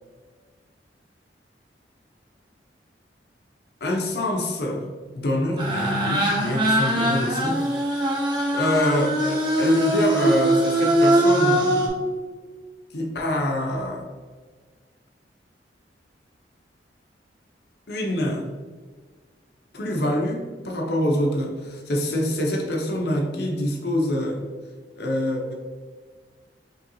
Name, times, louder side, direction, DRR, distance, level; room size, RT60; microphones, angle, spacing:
voice 1, 3.8-4.9 5.1-8.1 8.5-12.0 12.9-14.0 17.9-18.5 19.7-24.4 25.0-25.5, left 1 dB, 60° left, 1 dB, 0.7 m, -25 dB
sound 1, 5.6-11.9, right 1 dB, 25° right, 0.8 m, -21 dB
5.5 x 3.1 x 2.7 m, 1.5 s
head